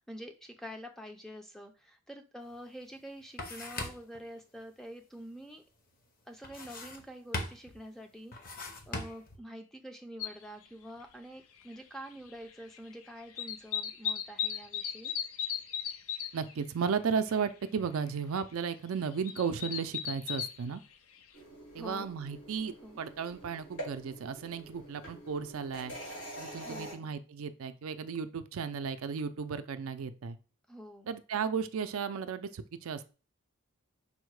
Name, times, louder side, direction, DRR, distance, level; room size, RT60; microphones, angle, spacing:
voice 1, 0.0-5.6 6.3-8.3 8.9-15.1 21.8-22.1 22.8-23.0 26.6-27.1 30.7-31.1, equal, ahead, 5 dB, 0.4 m, -47 dB
sound 1, 2.5-2.6 3.0-4.2 6.4-7.1 7.3-7.8 8.3-9.4, left 2 dB, 40° left, 0.7 m, -40 dB
sound 2, 10.2-10.3 11.7-11.8 12.1-12.9 13.2-16.5 16.9-17.0 17.1-17.5 17.9-18.0 18.9-20.6 21.2-21.3, left 8 dB, 75° left, 0.5 m, -36 dB
voice 2, 16.3-20.8 21.7-25.9 26.4-30.4 31.1-33.1, right 6 dB, 70° right, 11 dB, 0.4 m, -34 dB
sound 3, 21.3-26.9, right 1 dB, 90° left, 2.8 m, -46 dB
5.4 x 2.1 x 4.6 m, 0.34 s
head